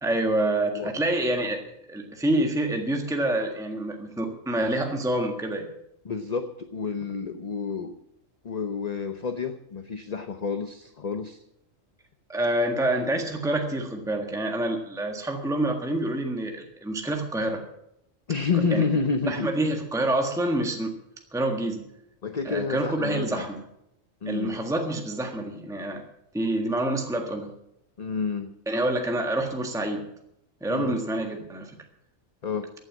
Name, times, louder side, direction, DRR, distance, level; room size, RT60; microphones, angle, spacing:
voice 1, 0.0-5.7 12.3-17.6 18.7-18.8 19.3-20.9 21.3-21.8 22.4-23.6 24.3-26.0 26.3-27.5 28.7-30.1 30.6-31.7, right 1 dB, 5° right, 3 dB, 1.5 m, -27 dB
voice 2, 6.0-7.9 8.4-11.4 18.3-19.5 22.2-23.5 24.2-24.6 28.0-28.5 30.7-31.0 32.4-32.7, left 5 dB, 35° left, 8 dB, 0.8 m, -29 dB
15.0 x 9.1 x 7.4 m, 0.79 s
omnidirectional pair, 1.4 m